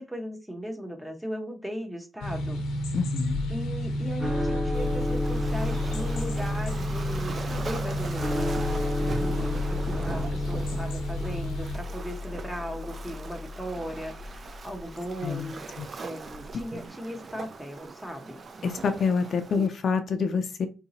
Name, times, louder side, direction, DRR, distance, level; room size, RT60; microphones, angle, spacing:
voice 1, 0.0-2.6 3.5-8.7 9.0-15.6 16.0-18.4 19.5-19.7, equal, 5° right, 4 dB, 0.9 m, -37 dB
sound 1, 2.2-11.8, equal, 85° left, 0.7 m, -32 dB
voice 2, 2.9-3.4 15.2-15.5 15.8-15.9 18.6-20.7, left 5 dB, 55° left, 7 dB, 0.5 m, -27 dB
sound 2, 4.2-14.6, left 2 dB, 20° right, 1.2 m, -32 dB
Waves surf, 4.7-19.7, right 4 dB, 40° right, 0.5 m, -41 dB
3.8 x 2.8 x 2.7 m, 0.31 s
cardioid pair, 90°, 0 cm